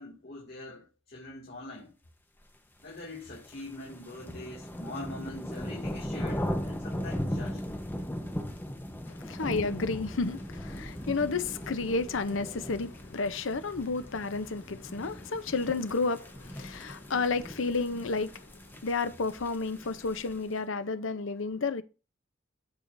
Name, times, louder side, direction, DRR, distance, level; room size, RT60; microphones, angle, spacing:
voice 1, 0.0-1.9 2.8-7.6, left 2 dB, 50° left, 2.3 m, -43 dB
sound 1, 3.0-20.5, equal, 10° left, 1.0 m, -38 dB
voice 2, 9.1-18.4 18.8-21.8, left 4 dB, 75° left, 0.7 m, -31 dB
14.0 x 4.7 x 2.6 m
head